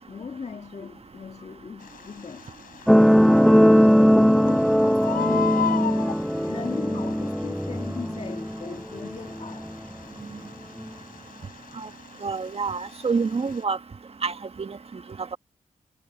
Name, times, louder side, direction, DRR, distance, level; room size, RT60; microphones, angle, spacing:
voice 1, 0.0-2.5 3.0-5.9 6.4-9.7, left 5 dB, 45° left, 1.5 m, -37 dB
Bird, 1.8-13.6, left 9 dB, 90° left, 4.4 m, -38 dB
sound 1, 2.9-9.9 10.8-10.9, equal, ahead, 0.5 m, -20 dB
voice 2, 12.2-13.8 14.2-14.8, right 5 dB, 45° right, 1.3 m, -27 dB
cardioid pair, 55°, 14 cm